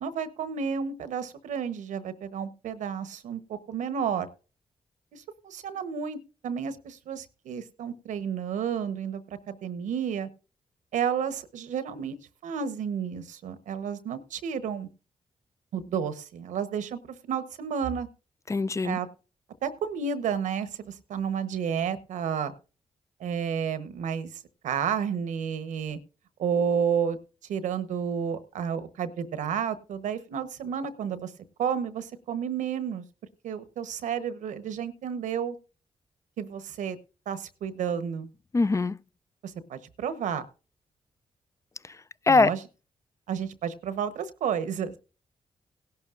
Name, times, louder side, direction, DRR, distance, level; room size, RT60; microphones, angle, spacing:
voice 1, 0.0-4.3 5.1-10.3 10.9-12.2 12.4-14.9 15.7-18.1 18.8-19.1 19.6-22.5 23.2-26.0 26.4-27.2 27.5-31.3 31.6-33.0 33.4-35.6 36.4-37.0 37.3-38.3 39.4-40.4 42.3-42.6 43.3-44.9, right 7 dB, 85° right, 1.0 m, -31 dB
voice 2, 18.5-19.0 38.5-39.0 41.8-42.5, left 3 dB, 25° left, 0.5 m, -23 dB
17.0 x 11.5 x 2.5 m
cardioid pair, 60°, 12 cm